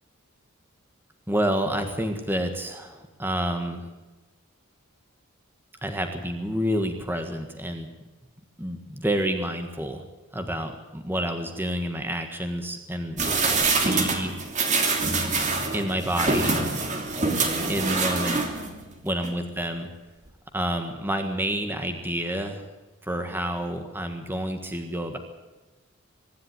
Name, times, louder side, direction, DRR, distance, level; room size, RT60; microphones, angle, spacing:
voice 1, 1.3-3.9 5.8-7.9 8.6-10.1 10.3-13.2 13.8-14.4 15.7-16.7 17.7-18.4 19.0-19.9 20.5-22.6 23.0-25.2, right 1 dB, 10° right, 5 dB, 1.6 m, -29 dB
sound 1, 13.2-18.8 19.2-19.3, right 3 dB, 35° right, 3.0 m, -25 dB
24.0 x 11.5 x 9.6 m, 1.1 s
head